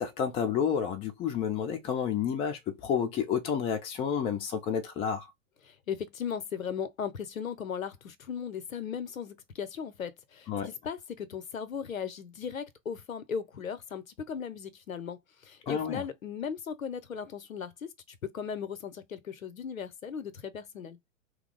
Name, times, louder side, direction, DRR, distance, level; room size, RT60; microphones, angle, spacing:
voice 1, 0.0-5.3 10.5-10.7 15.7-16.0, left 7 dB, 15° left, 0.5 m, -30 dB
voice 2, 5.6-21.0, left 7 dB, 80° left, 0.7 m, -37 dB
2.8 x 2.0 x 3.7 m
figure-of-eight pair, 110°, 40 cm